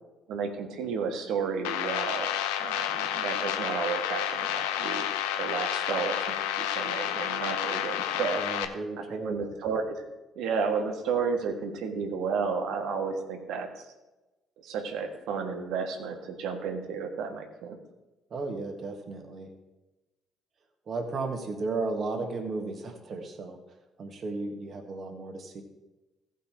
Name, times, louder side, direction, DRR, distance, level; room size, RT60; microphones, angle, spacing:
voice 1, 0.3-2.3 2.6-5.1 5.4-8.8 9.1-10.0 10.3-13.7 14.6-17.8, right 5 dB, 75° right, 4 dB, 1.5 m, -32 dB
sound 1, 1.6-8.6, left 10 dB, 85° left, 0.6 m, -30 dB
voice 2, 8.4-9.5 18.3-19.5 20.9-23.6 24.0-25.6, right 3 dB, 50° right, 3 dB, 1.9 m, -34 dB
15.5 x 5.5 x 4.5 m, 1.1 s
hypercardioid pair, 55°, 0 cm